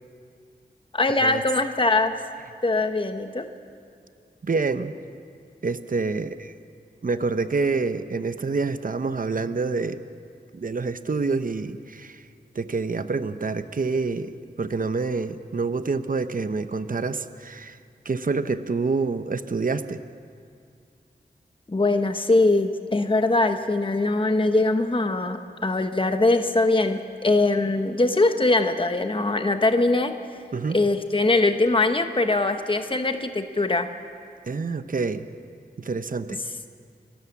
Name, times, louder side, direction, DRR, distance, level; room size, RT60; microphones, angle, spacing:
voice 1, 0.9-2.1 2.6-3.5 21.7-30.1 30.7-33.9, left 2 dB, 30° left, 7 dB, 1.0 m, -22 dB
voice 2, 4.4-4.9 5.6-6.5 7.0-10.0 10.5-12.2 12.5-17.8 18.0-20.0 30.5-30.8 34.5-35.3 35.8-36.4, right 4 dB, 55° right, 11 dB, 0.8 m, -27 dB
29.5 x 13.0 x 7.2 m, 2.3 s
wide cardioid pair, 70°, 17 cm